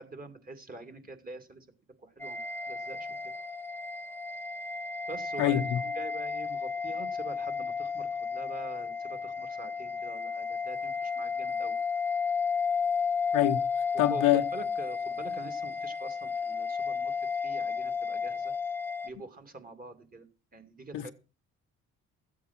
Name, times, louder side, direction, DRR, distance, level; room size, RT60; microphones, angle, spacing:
voice 1, 0.0-1.7 2.0-2.4 2.7-3.3 5.1-11.8 13.9-18.5 19.0-20.3 20.5-21.1, right 3 dB, 30° right, 2.5 m, -45 dB
sound 1, 2.2-19.1, left 5 dB, 5° left, 0.7 m, -33 dB
voice 2, 5.4-5.8 13.3-13.6 14.0-14.4 20.9-21.1, left 13 dB, 90° left, 1.0 m, -25 dB
13.5 x 8.4 x 6.0 m
cardioid pair, 90°, 30 cm